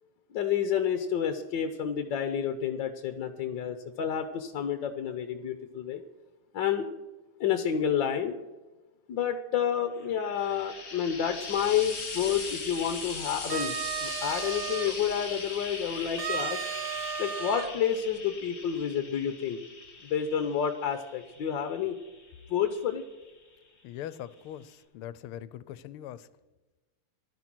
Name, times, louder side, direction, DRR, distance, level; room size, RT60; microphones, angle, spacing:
voice 1, 0.3-6.0 6.5-6.9 7.4-8.4 9.1-13.7 14.0-16.7 17.2-19.6 20.0-22.0 22.5-23.0, left 8 dB, 65° left, 8 dB, 1.4 m, -29 dB
Frying (food), 10.0-23.4 24.4-24.5, left 4 dB, 35° left, 2.3 m, -40 dB
sound 1, 13.4-14.9 16.2-17.7, right 8 dB, 65° right, 1.7 m, -34 dB
voice 2, 23.8-26.3, left 11 dB, 85° left, 16 dB, 1.6 m, -41 dB
15.0 x 12.0 x 6.1 m, 1.2 s
omnidirectional pair, 2.4 m